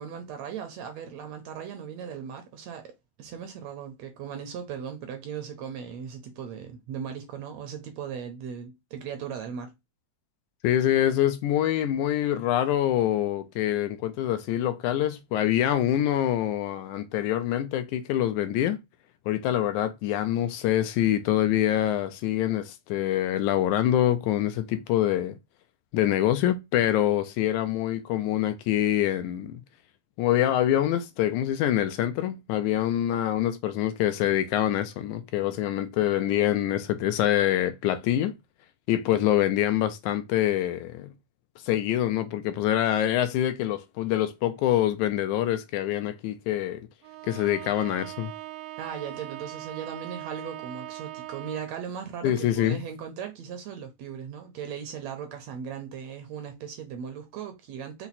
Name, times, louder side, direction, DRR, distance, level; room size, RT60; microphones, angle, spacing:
voice 1, 0.0-2.9 3.2-9.7 48.8-58.1, right 7 dB, 70° right, 1.7 m, -38 dB
voice 2, 10.6-18.8 19.3-25.4 25.9-29.6 30.2-38.3 38.9-41.1 41.6-46.9 47.2-48.3 52.2-52.8, left 12 dB, 80° left, 1.9 m, -25 dB
Bowed string instrument, 47.0-51.9, right 16 dB, 90° right, 2.1 m, -40 dB
5.8 x 2.1 x 4.0 m
omnidirectional pair, 3.6 m